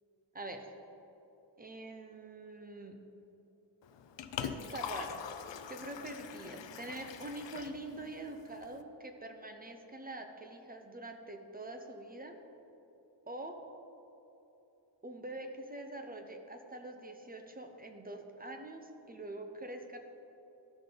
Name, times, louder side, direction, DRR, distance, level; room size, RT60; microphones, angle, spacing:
voice 1, 0.3-0.7 1.6-3.0 4.4-5.2 5.7-12.4 13.3-13.6 15.0-20.0, right 2 dB, 20° right, 4 dB, 0.7 m, -45 dB
Liquid, 3.8-8.8, left 8 dB, 75° left, 0.5 m, -44 dB
13.0 x 5.3 x 3.8 m, 3.0 s
wide cardioid pair, 120°, 44 cm